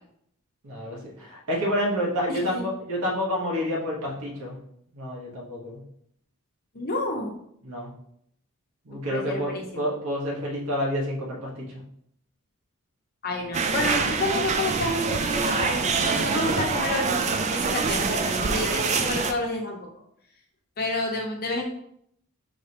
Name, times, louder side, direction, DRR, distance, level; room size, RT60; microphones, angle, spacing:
voice 1, 0.6-4.6 4.9-5.8 7.6-7.9 8.8-11.6, equal, 85° right, -3 dB, 1.4 m, -29 dB
voice 2, 2.3-2.6 6.7-7.3 9.1-9.9 13.2-19.8 20.8-21.6, left 2 dB, 45° left, 1 dB, 0.8 m, -29 dB
sound 1, 13.5-19.3, right 4 dB, 30° right, 0.3 m, -25 dB
4.8 x 3.2 x 2.9 m, 0.70 s
head